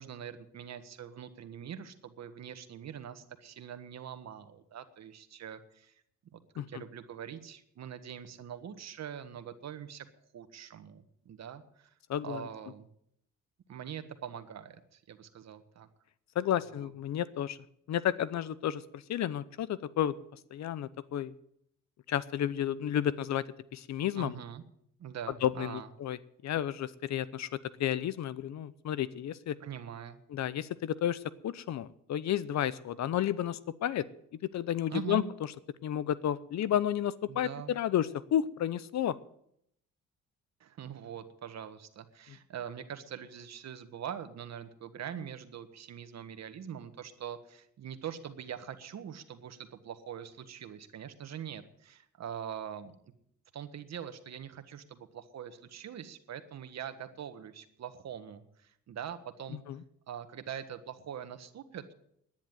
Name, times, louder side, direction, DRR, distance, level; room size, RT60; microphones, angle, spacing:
voice 1, 0.0-6.0 6.3-6.4 6.7-10.0 10.3-11.9 12.2-12.9 13.7-15.9 16.7-16.9 24.2-24.6 25.0-25.9 29.6-30.2 34.9-35.3 37.3-37.7 40.6-52.9 53.5-59.6 60.1-61.9, right 8 dB, 60° right, 10 dB, 1.5 m, -43 dB
voice 2, 12.1-12.5 16.3-17.6 17.9-20.1 20.5-21.3 22.1-23.4 23.7-24.4 25.4-26.2 26.4-27.5 27.8-29.6 30.3-34.0 34.5-35.2 35.8-39.2 59.7-59.8, left 11 dB, 65° left, 18 dB, 0.8 m, -32 dB
10.5 x 10.5 x 9.1 m, 0.71 s
cardioid pair, 90°, 30 cm